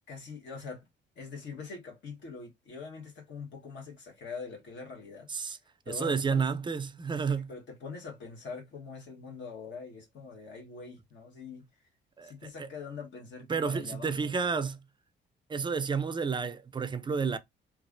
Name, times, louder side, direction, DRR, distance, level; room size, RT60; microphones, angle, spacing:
voice 1, 0.1-0.9 1.2-5.3 5.8-6.4 7.3-11.6 12.2-14.6, left 5 dB, 65° left, 1.2 m, -43 dB
voice 2, 5.9-7.5 12.2-12.7 13.5-14.8 15.5-17.4, right 5 dB, 25° right, 0.4 m, -31 dB
3.0 x 2.4 x 2.5 m
cardioid pair, 90°, 20 cm